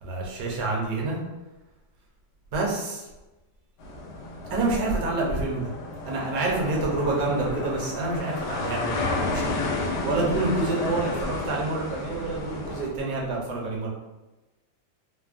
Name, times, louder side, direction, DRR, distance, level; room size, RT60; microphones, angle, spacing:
voice 1, 0.0-1.2 2.5-3.1 4.5-5.7 6.0-9.6 10.0-13.9, right 2 dB, 70° right, -2 dB, 1.1 m, -27 dB
sound 1, 3.8-12.9, left 2 dB, 80° left, 1.2 m, -32 dB
3.2 x 2.0 x 2.4 m, 1.1 s
omnidirectional pair, 1.8 m